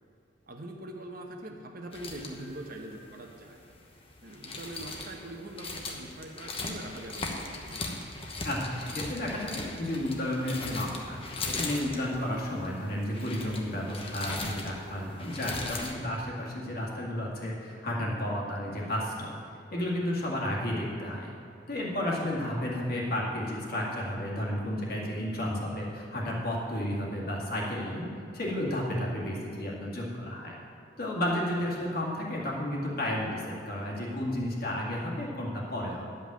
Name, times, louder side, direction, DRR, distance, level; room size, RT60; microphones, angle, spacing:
voice 1, 0.5-3.6 4.2-7.8 22.0-22.2, right 1 dB, 50° right, 3 dB, 1.0 m, -43 dB
sound 1, 1.9-15.9, left 3 dB, 30° left, 1.0 m, -39 dB
voice 2, 8.4-11.2 11.5-19.3 19.7-21.3 21.7-28.1 28.3-30.6 31.0-36.1, left 1 dB, 55° left, -3 dB, 2.0 m, -32 dB
10.5 x 5.5 x 7.4 m, 2.5 s
head